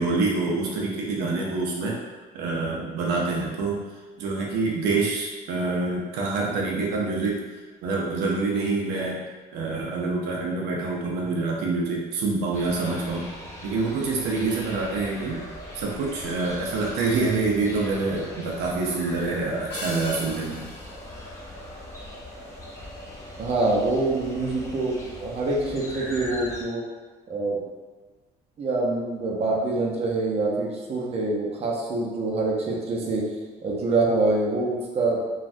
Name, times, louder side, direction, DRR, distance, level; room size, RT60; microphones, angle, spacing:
voice 1, 0.0-2.0 2.3-3.8 4.2-7.5 7.8-9.2 9.5-13.3 13.6-15.4 15.7-20.6, right 3 dB, 85° right, -2 dB, 0.5 m, -26 dB
sound 1, 12.5-26.6, left 1 dB, 20° left, 0.6 m, -40 dB
sound 2, 19.7-22.3, left 2 dB, 75° left, 0.6 m, -40 dB
voice 2, 23.4-26.8 27.3-27.6 28.6-33.3 33.6-35.2, right 2 dB, 35° right, -3 dB, 0.6 m, -25 dB
3.1 x 2.3 x 2.6 m, 1.3 s
cardioid pair, 110°, 17 cm